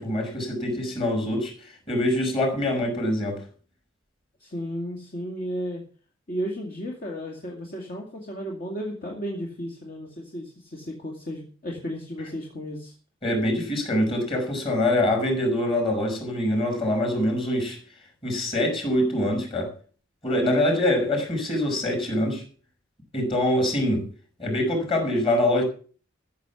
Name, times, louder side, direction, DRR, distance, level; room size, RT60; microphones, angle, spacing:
voice 1, 0.0-1.5 1.9-3.4 13.2-17.8 18.2-19.7 20.2-22.4 23.1-24.0 24.4-25.6, left 1 dB, 30° left, 5.6 m, -24 dB
voice 2, 4.4-5.8 6.3-12.9, equal, 50° left, 2.4 m, -34 dB
14.5 x 7.3 x 7.0 m
head